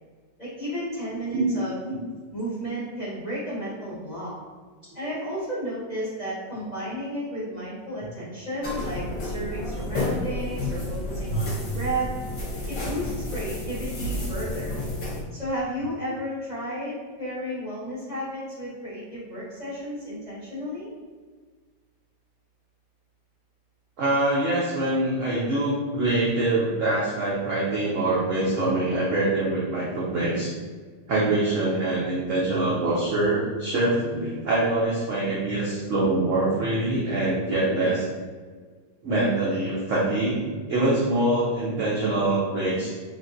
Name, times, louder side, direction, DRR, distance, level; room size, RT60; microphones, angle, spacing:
voice 1, 0.4-1.8 2.3-4.4 4.9-12.1 12.7-14.7 15.3-20.9, equal, 35° left, -10 dB, 0.7 m, -33 dB
sound 1, 8.6-15.2, left 2 dB, 60° left, 1.1 m, -31 dB
voice 2, 24.0-30.5 31.1-38.0 39.0-42.9, right 2 dB, 75° right, -7 dB, 0.7 m, -24 dB
3.4 x 2.4 x 2.5 m, 1.5 s
omnidirectional pair, 2.0 m